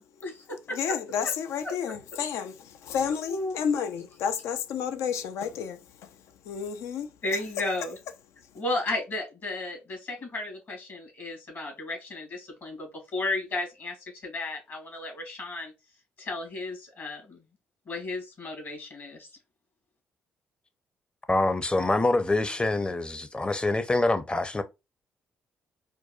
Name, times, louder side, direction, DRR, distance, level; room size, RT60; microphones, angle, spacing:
voice 1, 0.0-0.9 3.3-3.6 7.2-8.0 8.5-14.0 14.2-15.7 16.2-17.4 17.9-19.3, left 2 dB, 50° left, 2.3 m, -34 dB
voice 2, 0.7-7.4 8.5-8.6, left 7 dB, 70° left, 0.5 m, -31 dB
voice 3, 21.3-24.6, left 2 dB, 20° left, 0.7 m, -25 dB
4.5 x 2.2 x 2.4 m
hypercardioid pair, 50°, 5 cm